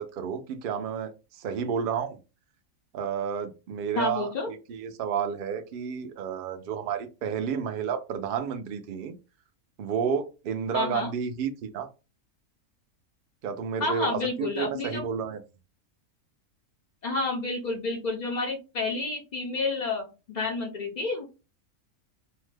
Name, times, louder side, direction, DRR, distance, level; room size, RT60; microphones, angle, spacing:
voice 1, 0.0-2.2 2.9-9.2 9.8-11.9 13.4-15.4, right 7 dB, 90° right, 7 dB, 0.4 m, -31 dB
voice 2, 3.9-4.5 10.7-11.1 13.8-15.0 17.0-21.3, left 3 dB, 70° left, -1 dB, 0.4 m, -30 dB
2.7 x 2.1 x 3.2 m, 0.30 s
omnidirectional pair, 1.5 m